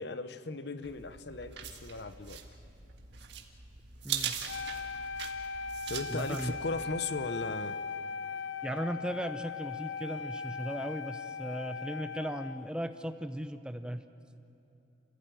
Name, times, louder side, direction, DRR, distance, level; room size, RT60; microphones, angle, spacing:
voice 1, 0.0-2.4 5.9-7.8, left 3 dB, 60° left, 11 dB, 0.8 m, -37 dB
sound 1, 0.8-7.0, right 8 dB, 65° right, 1.7 m, -41 dB
voice 2, 4.0-4.3 6.1-6.5 8.6-14.0, equal, 5° right, 9 dB, 0.7 m, -37 dB
Wind instrument woodwind instrument, 4.5-12.7, left 5 dB, 80° left, 0.5 m, -39 dB
28.0 x 16.0 x 9.1 m, 2.8 s
head